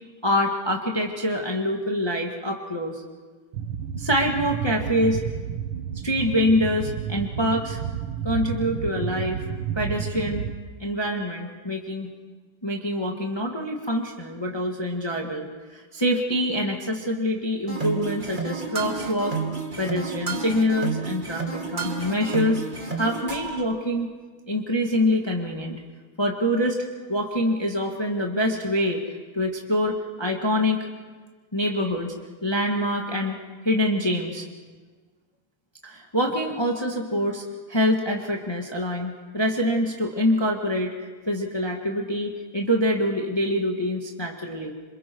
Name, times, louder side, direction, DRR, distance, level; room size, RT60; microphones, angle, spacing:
voice 1, 0.2-3.0 4.0-5.2 6.0-7.8 8.2-9.4 9.7-10.4 10.8-12.1 12.6-19.3 19.8-22.6 22.9-24.1 24.5-25.8 26.2-26.8 27.1-30.9 31.5-32.1 32.4-33.4 33.6-34.4 35.8-40.9 41.3-44.7, left 1 dB, 15° left, 1 dB, 1.7 m, -25 dB
sound 1, 3.5-10.6, right 8 dB, 85° right, 1.8 m, -31 dB
sound 2, 17.7-23.6, right 4 dB, 25° right, 2.0 m, -30 dB
27.5 x 27.5 x 4.7 m, 1.4 s
omnidirectional pair, 2.3 m